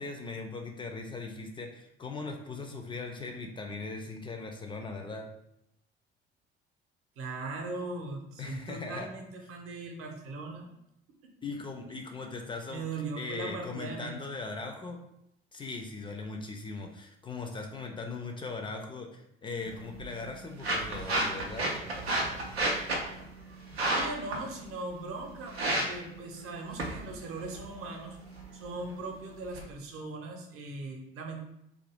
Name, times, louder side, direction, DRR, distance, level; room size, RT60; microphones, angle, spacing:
voice 1, 0.0-5.3 8.4-9.1 11.4-12.9 13.1-15.0 15.5-21.7, left 3 dB, 15° left, 3 dB, 0.4 m, -39 dB
voice 2, 7.2-10.7 11.2-11.3 12.7-14.4 23.8-28.2 28.5-31.4, right 3 dB, 45° right, 2 dB, 0.7 m, -39 dB
sound 1, 19.6-29.6, right 1 dB, 85° right, 0.5 m, -34 dB
2.5 x 2.4 x 3.3 m, 0.80 s
figure-of-eight pair, 55°, 30 cm